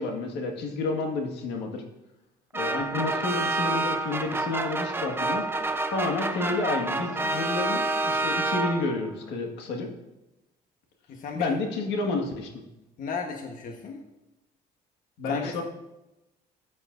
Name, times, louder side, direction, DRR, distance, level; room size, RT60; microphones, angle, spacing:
voice 1, 0.0-1.8 2.5-5.5 5.9-9.9 11.3-12.5 15.2-15.6, left 3 dB, 85° left, 3 dB, 1.8 m, -30 dB
sound 1, 2.5-9.1, right 2 dB, 15° right, 0.6 m, -28 dB
voice 2, 11.1-11.6 13.0-14.0 15.2-15.6, left 5 dB, 55° left, 2 dB, 1.2 m, -35 dB
15.0 x 8.6 x 2.6 m, 0.97 s
cardioid pair, 110°, 17 cm